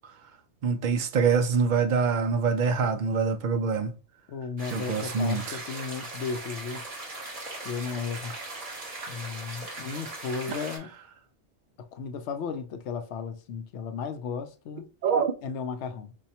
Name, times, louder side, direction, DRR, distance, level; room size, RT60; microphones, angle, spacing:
voice 1, 0.6-4.0 4.7-5.6 15.0-15.3, right 5 dB, 55° right, 0.5 m, -25 dB
voice 2, 4.3-6.8 7.6-8.3 9.1-10.9 11.8-14.9 15.4-16.1, left 5 dB, 75° left, 0.8 m, -35 dB
sound 1, 4.6-10.8, right 2 dB, 35° right, 1.0 m, -39 dB
5.2 x 2.2 x 2.8 m
omnidirectional pair, 1.2 m